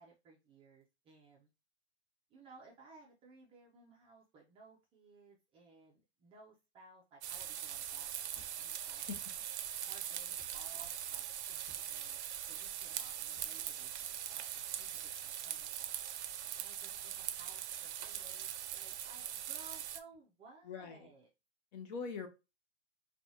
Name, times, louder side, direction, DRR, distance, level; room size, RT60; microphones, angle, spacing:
voice 1, 0.0-1.5 2.3-9.0 9.8-12.2 12.5-15.9 16.5-21.3, right 3 dB, 15° right, 0.5 m, -60 dB
sound 1, 7.2-20.0, right 10 dB, 70° right, 0.6 m, -41 dB
sound 2, 8.3-8.6 9.1-9.3 10.3-10.6 11.6-11.9 13.3-13.5, right 1 dB, 5° left, 0.9 m, -61 dB
voice 2, 20.6-21.1 21.7-22.3, left 5 dB, 40° left, 0.8 m, -42 dB
4.3 x 2.3 x 2.7 m
hypercardioid pair, 140°, 35 cm